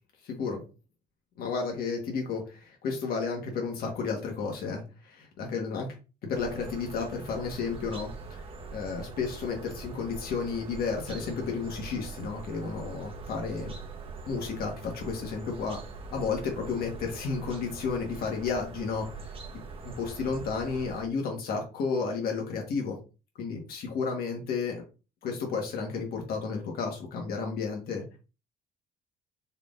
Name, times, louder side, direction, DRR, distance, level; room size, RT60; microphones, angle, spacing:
voice 1, 0.3-0.6 1.4-5.9 6.3-8.4 8.7-13.7 14.3-15.8 16.1-19.1 19.8-22.9 23.4-24.8 25.2-28.2, left 5 dB, 65° left, 1 dB, 1.3 m, -32 dB
sound 1, 6.3-21.1, right 4 dB, 35° right, 0.9 m, -43 dB
4.5 x 3.5 x 2.5 m, 0.32 s
cardioid pair, 110°, 17 cm